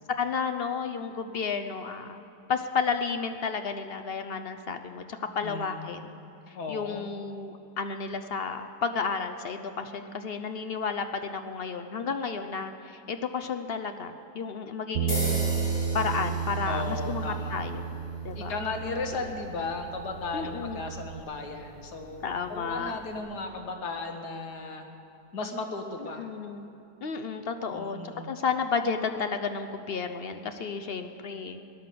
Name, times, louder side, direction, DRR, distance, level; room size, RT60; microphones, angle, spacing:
voice 1, 0.2-6.1 6.5-17.9 18.2-18.6 20.3-20.8 22.2-23.0 26.2-26.7 27.0-28.0 28.3-31.7, left 5 dB, 60° left, 8 dB, 0.6 m, -32 dB
voice 2, 5.4-5.9 6.5-7.1 16.6-17.6 18.4-24.8 25.3-26.3 27.7-28.3, left 3 dB, 80° left, 4 dB, 1.9 m, -35 dB
Bass guitar, 15.0-21.2, right 7 dB, 65° right, 0.7 m, -33 dB
sound 1, 15.1-23.2, left 1 dB, 35° left, 4.5 m, -41 dB
18.5 x 11.0 x 6.8 m, 2.6 s
omnidirectional pair, 1.7 m